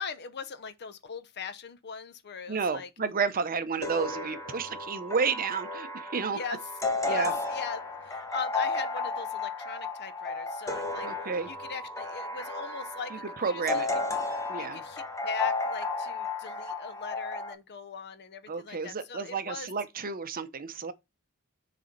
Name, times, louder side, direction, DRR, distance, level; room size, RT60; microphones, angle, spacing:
voice 1, 0.0-2.9 6.3-6.6 7.0-7.8 8.1-11.1 11.5-13.9 14.6-19.7, left 5 dB, 50° left, 0.7 m, -40 dB
voice 2, 2.5-6.4 7.0-7.3 11.0-11.5 13.1-13.9 14.5-14.8 18.5-20.9, right 5 dB, 40° right, 0.7 m, -31 dB
sound 1, 3.8-17.5, left 3 dB, 15° left, 1.2 m, -33 dB
6.6 x 4.2 x 5.1 m
head